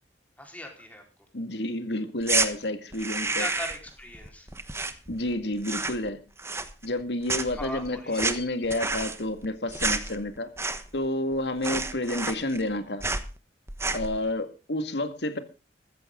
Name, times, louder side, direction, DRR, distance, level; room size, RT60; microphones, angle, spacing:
voice 1, 0.4-1.0 3.1-4.5 7.5-8.3, left 1 dB, 10° left, 2 dB, 4.5 m, -39 dB
voice 2, 1.3-3.5 5.1-6.2 6.8-10.5 10.9-13.0 13.9-15.4, left 1 dB, 70° left, 9 dB, 2.1 m, -30 dB
sound 1, 2.2-2.5 2.9-5.3 5.6-6.1 6.4-7.0 7.3-11.1 11.3-11.4 11.6-12.7 13.0-13.3 13.7-14.2, right 3 dB, 15° right, 1.2 m, -30 dB
14.5 x 14.0 x 3.9 m, 0.33 s
head